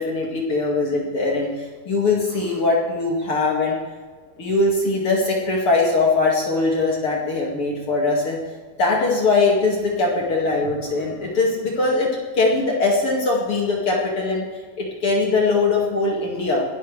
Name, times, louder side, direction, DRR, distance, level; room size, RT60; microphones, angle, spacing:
voice 1, 0.0-3.8 4.4-8.4 8.8-14.5 14.8-16.6, left 3 dB, 45° left, -2 dB, 2.6 m, -21 dB
22.0 x 11.5 x 3.3 m, 1.5 s
omnidirectional pair, 4.1 m